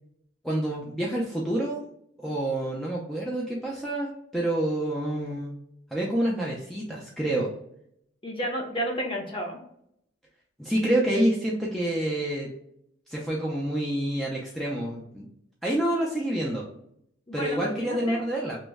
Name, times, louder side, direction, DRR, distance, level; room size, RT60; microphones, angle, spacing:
voice 1, 0.4-1.8 2.2-5.5 5.9-7.5 10.6-12.5 13.1-15.3 15.6-16.6 17.3-18.6, right 1 dB, ahead, -4 dB, 0.4 m, -27 dB
voice 2, 8.2-9.6 17.3-18.2, equal, 30° left, 0 dB, 0.7 m, -32 dB
3.0 x 2.1 x 3.4 m, 0.73 s
head